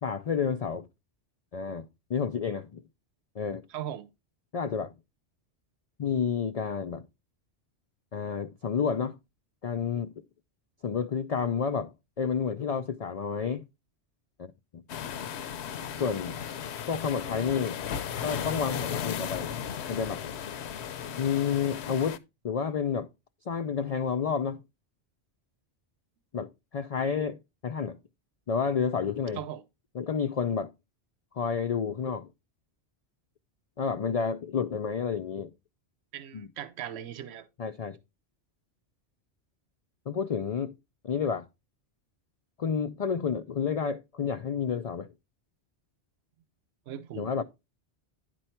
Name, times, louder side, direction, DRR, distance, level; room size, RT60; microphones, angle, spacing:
voice 1, 0.0-0.9 1.5-2.8 3.4-3.7 4.5-4.9 6.0-7.1 8.1-9.2 9.6-10.1 10.8-13.7 14.4-14.8 16.0-16.4 16.9-17.8 18.2-19.5 19.9-20.3 21.2-23.1 23.5-24.6 26.3-28.0 28.5-29.4 29.9-30.7 31.3-32.3 33.8-35.5 36.3-36.5 37.6-38.0 40.1-40.8 41.0-41.5 42.6-45.1 47.1-47.4, left 6 dB, 50° left, 0.4 m, -30 dB
voice 2, 3.7-4.1 29.4-29.6 36.1-37.5 46.9-47.4, right 10 dB, 75° right, 0.9 m, -39 dB
sound 1, 14.9-22.2, left 8 dB, 75° left, 0.9 m, -35 dB
10.5 x 4.5 x 4.4 m
omnidirectional pair, 1.1 m